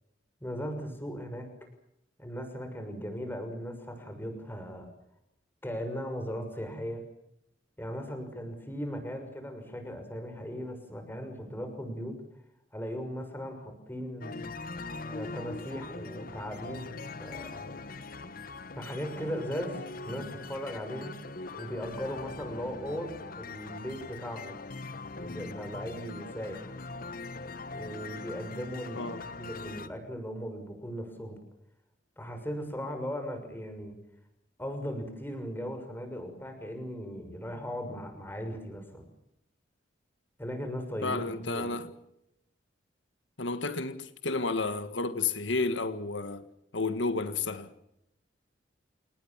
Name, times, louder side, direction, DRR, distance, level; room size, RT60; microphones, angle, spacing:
voice 1, 0.4-1.5 2.2-4.9 5.6-7.0 7.8-12.1 12.7-14.4 15.1-17.6 18.7-21.1 21.5-24.6 25.2-26.7 27.7-29.1 29.4-31.4 32.2-34.0 34.6-39.0 40.4-41.8, equal, 10° left, 6.3 m, -38 dB
sound 1, 14.2-29.9, left 3 dB, 50° left, 1.3 m, -42 dB
voice 2, 41.0-41.9 43.4-46.4 46.7-47.7, left 3 dB, 80° left, 1.7 m, -31 dB
28.0 x 20.0 x 7.4 m
head